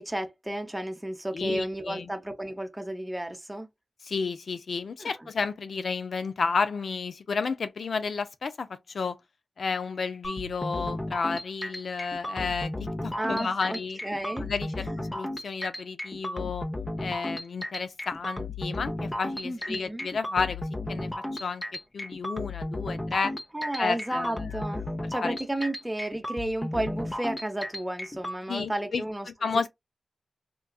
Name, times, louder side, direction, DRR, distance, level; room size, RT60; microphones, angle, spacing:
voice 1, 0.0-3.7 5.0-5.1 13.2-14.5 19.4-20.1 23.5-29.3, right 1 dB, 15° right, 0.8 m, -32 dB
voice 2, 1.3-2.1 4.0-9.2 9.6-12.7 13.0-14.0 14.4-16.7 17.0-21.6 21.9-23.3 23.8-24.5 25.2-25.4 28.5-29.0 29.4-29.7, left 4 dB, 75° left, 0.5 m, -31 dB
sound 1, 10.2-28.4, left 1 dB, 20° left, 0.7 m, -34 dB
3.8 x 2.3 x 2.3 m
cardioid pair, 45°, 0 cm